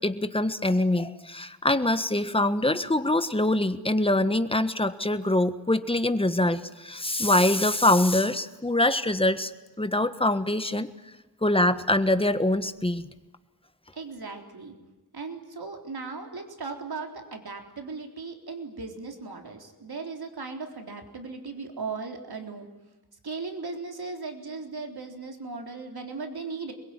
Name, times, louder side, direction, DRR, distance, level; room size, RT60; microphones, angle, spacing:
voice 1, 0.0-9.5 9.8-10.9 11.4-13.1, left 1 dB, 15° left, 10 dB, 1.5 m, -24 dB
voice 2, 13.9-14.7 15.1-22.7 23.2-26.7, right 4 dB, 75° right, 3 dB, 4.0 m, -37 dB
27.0 x 22.0 x 9.8 m, 1.1 s
wide cardioid pair, 100°, 38 cm